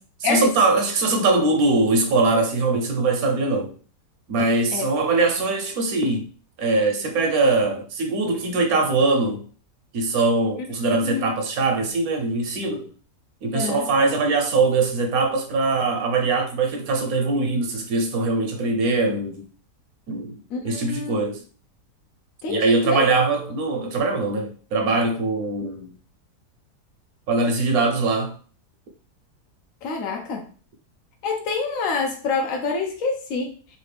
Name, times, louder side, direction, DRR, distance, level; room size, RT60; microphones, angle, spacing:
voice 1, 0.2-3.7 4.3-6.3 6.6-9.4 9.9-12.9 13.4-19.4 20.1-20.4 20.6-21.4 22.5-25.9 27.3-28.3, right 3 dB, 65° right, 1.2 m, -22 dB
voice 2, 13.5-13.8 20.5-21.2 22.4-23.0 29.8-30.5 31.2-33.5, left 4 dB, 65° left, 0.9 m, -26 dB
3.3 x 2.6 x 3.3 m
omnidirectional pair, 1.8 m